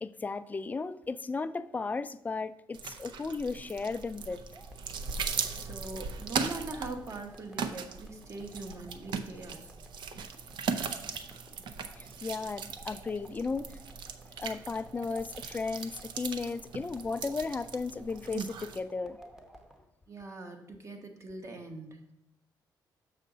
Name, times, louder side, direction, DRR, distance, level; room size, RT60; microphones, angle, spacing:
voice 1, 0.0-4.4 12.0-13.8 14.4-19.2, left 4 dB, 20° left, 0.3 m, -35 dB
sound 1, 2.7-18.8, right 6 dB, 70° right, 0.6 m, -39 dB
sound 2, 4.5-19.8, right 1 dB, 5° right, 0.9 m, -55 dB
voice 2, 5.5-9.7 20.1-22.0, right 2 dB, 40° right, 1.3 m, -42 dB
6.4 x 6.4 x 3.9 m
cardioid pair, 100°, 8 cm